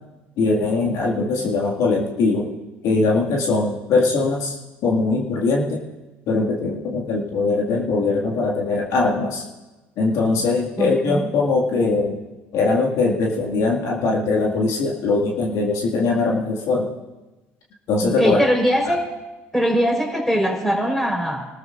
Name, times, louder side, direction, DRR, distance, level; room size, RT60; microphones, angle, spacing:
voice 1, 0.4-2.5 2.8-4.6 4.8-5.8 6.3-9.4 10.0-12.2 12.5-16.9 17.9-18.4, left 3 dB, 60° left, -2 dB, 2.0 m, -21 dB
voice 2, 10.8-11.3 18.0-19.0 19.5-21.5, equal, 5° left, 0 dB, 4.1 m, -21 dB
24.0 x 13.5 x 2.5 m, 1.1 s
hypercardioid pair, 70°, 6 cm